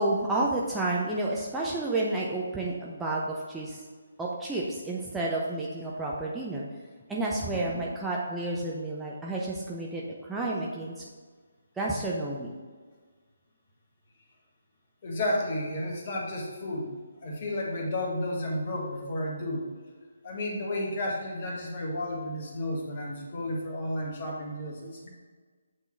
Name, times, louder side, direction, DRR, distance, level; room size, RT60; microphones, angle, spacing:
voice 1, 0.0-3.8 4.2-6.6 7.1-11.0 11.8-12.6, right 2 dB, 5° right, -5 dB, 0.6 m, -30 dB
voice 2, 15.0-16.9 17.2-19.7 20.2-25.1, left 1 dB, 35° left, -1 dB, 1.4 m, -32 dB
8.1 x 3.7 x 4.4 m, 1.5 s
figure-of-eight pair, 145°, 0 cm